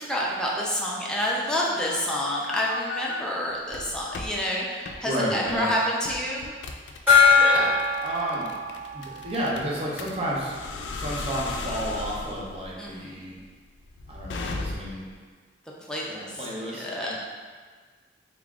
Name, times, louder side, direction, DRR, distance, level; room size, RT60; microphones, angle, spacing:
voice 1, 0.0-6.5 12.8-13.2 15.9-16.4 16.8-17.1, equal, 5° left, -5 dB, 0.5 m, -28 dB
sound 1, 1.4-3.2 3.7-4.3 4.9-5.0 5.5-5.7 6.1-15.1, left 3 dB, 70° left, 0.3 m, -36 dB
voice 2, 5.0-5.7 7.4-8.5 8.9-13.4 14.1-15.1 16.1-17.1, right 1 dB, 30° right, -5 dB, 0.7 m, -31 dB
Gong, 7.1-10.3, left 5 dB, 10° right, 1.5 m, -22 dB
3.7 x 3.6 x 2.3 m, 1.5 s
head